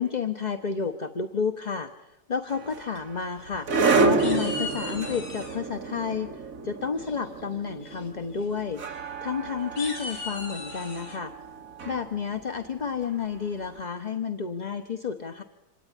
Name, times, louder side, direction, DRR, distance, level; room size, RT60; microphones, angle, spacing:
voice 1, 0.0-1.9 2.3-3.7 4.0-8.8 9.2-11.3 11.8-15.4, left 6 dB, 30° left, 6 dB, 0.9 m, -31 dB
sound 1, 2.5-13.6, right 4 dB, 50° right, 2.0 m, -30 dB
sound 2, 3.2-3.8 4.2-5.6 7.0-7.4 7.8-8.1 8.3-8.5 8.9-9.0 9.6-11.2, left 3 dB, 85° left, 4.8 m, -38 dB
26.0 x 18.5 x 9.9 m, 0.91 s
omnidirectional pair, 1.9 m